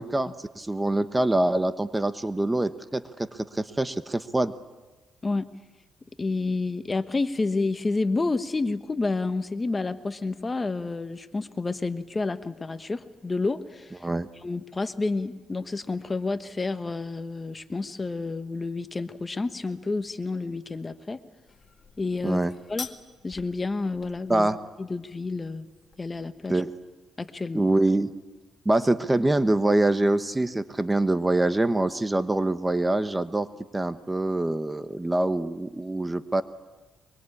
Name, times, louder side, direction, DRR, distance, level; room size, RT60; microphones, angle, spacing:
voice 1, 0.0-3.3 3.5-4.5 14.0-14.3 22.2-22.5 24.3-24.6 26.5-26.7 27.5-28.1 28.6-33.5 33.7-36.4, right 2 dB, 15° right, 11 dB, 1.1 m, -24 dB
voice 2, 6.2-14.0 14.4-21.2 22.0-22.4 22.7-22.9 23.2-24.5 24.8-25.7 26.0-26.6 27.2-27.7, left 3 dB, 25° left, 10 dB, 1.2 m, -29 dB
sound 1, 21.5-26.5, left 5 dB, 40° left, 1.9 m, -46 dB
24.0 x 23.5 x 8.6 m, 1.2 s
cardioid pair, 90°, 0 cm